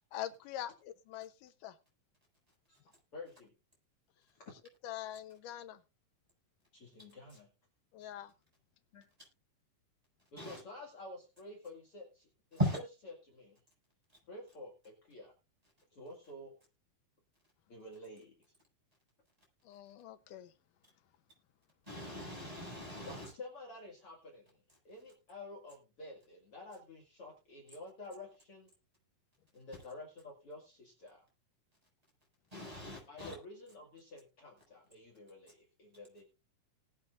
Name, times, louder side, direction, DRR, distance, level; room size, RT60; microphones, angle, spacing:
voice 1, 0.1-1.7 4.8-5.8 7.9-8.3 19.7-20.5 33.2-33.3, left 12 dB, 85° left, 2.4 m, -44 dB
voice 2, 3.1-3.5 4.3-4.5 6.7-7.5 8.9-9.1 10.3-12.8 13.2-13.6 14.3-15.3 15.9-16.6 17.7-18.3 23.0-28.7 29.5-31.3 33.1-36.2, left 2 dB, 45° left, 2.9 m, -50 dB
voice 3, 21.9-23.3 32.5-33.3, equal, 10° right, 7.6 m, -37 dB
20.0 x 8.8 x 2.5 m
omnidirectional pair, 3.7 m